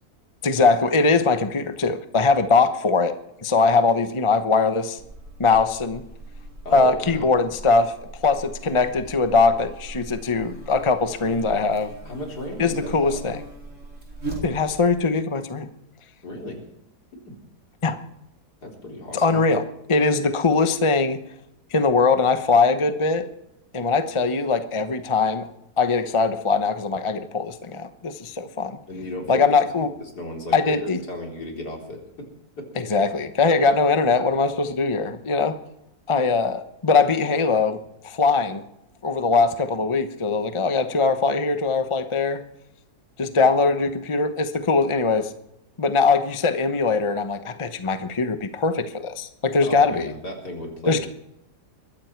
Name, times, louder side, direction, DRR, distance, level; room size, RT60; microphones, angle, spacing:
voice 1, 0.4-3.1 3.4-5.0 5.4-6.0 6.7-11.9 12.6-13.4 14.4-15.7 17.8-18.0 19.1-19.6 19.9-21.2 21.7-23.3 23.7-25.5 25.8-28.8 29.3-29.9 30.5-31.0 32.8-35.5 36.1-38.6 39.0-42.4 43.2-45.3 45.8-50.1 50.9-51.1, left 4 dB, 25° left, 9 dB, 0.8 m, -21 dB
Buzz, 5.0-14.9, right 2 dB, 45° right, 4.5 m, -39 dB
voice 2, 6.6-7.3 12.0-13.2 16.2-16.6 17.1-17.4 18.6-19.4 28.9-32.3 32.6-32.7 37.0-37.1 43.4-43.5 49.6-51.0, left 1 dB, 70° left, 1 dB, 4.4 m, -35 dB
21.5 x 14.5 x 4.6 m, 0.82 s
omnidirectional pair, 1.8 m